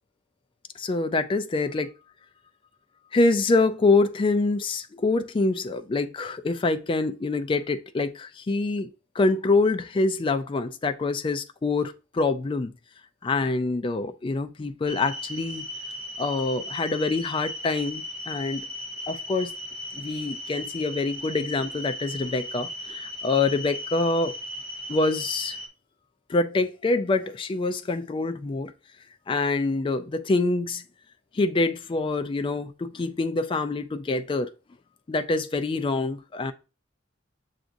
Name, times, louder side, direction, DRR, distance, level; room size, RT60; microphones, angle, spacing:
voice 1, 0.8-1.9 3.1-8.9 9.2-12.7 13.2-15.6 16.2-18.7 19.1-19.5 19.9-24.3 24.9-25.6 26.3-28.7 29.3-30.8 31.3-34.5 35.1-36.5, left 3 dB, 25° left, 0.3 m, -25 dB
sound 1, 14.9-25.7, left 1 dB, 30° right, 0.7 m, -37 dB
6.9 x 2.5 x 2.6 m
head